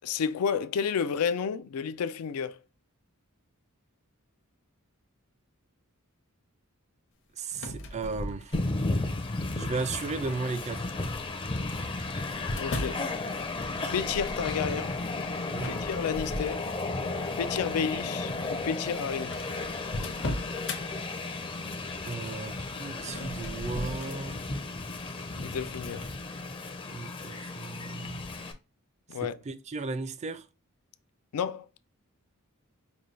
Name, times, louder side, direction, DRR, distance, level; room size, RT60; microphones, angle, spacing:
voice 1, 0.0-2.6 12.6-13.1 13.9-15.0 15.6-16.7 17.4-19.4 25.4-26.1 29.1-29.4 31.3-31.7, left 7 dB, 85° left, 0.4 m, -31 dB
voice 2, 7.4-8.6 9.6-10.9 15.5-15.8 22.0-24.4 26.9-28.2 29.2-30.4, right 3 dB, 30° right, 0.4 m, -35 dB
sound 1, 7.5-9.0 9.6-10.1 11.2-13.1 15.5-17.1 17.6-17.8 18.6-18.7 18.9-19.0 19.3-20.8 22.9-24.2, left 1 dB, 60° left, 0.8 m, -37 dB
Train, 8.5-28.5, left 2 dB, 25° left, 0.5 m, -34 dB
sound 2, 9.5-14.5, right 1 dB, 80° right, 0.7 m, -51 dB
5.2 x 2.2 x 3.1 m
head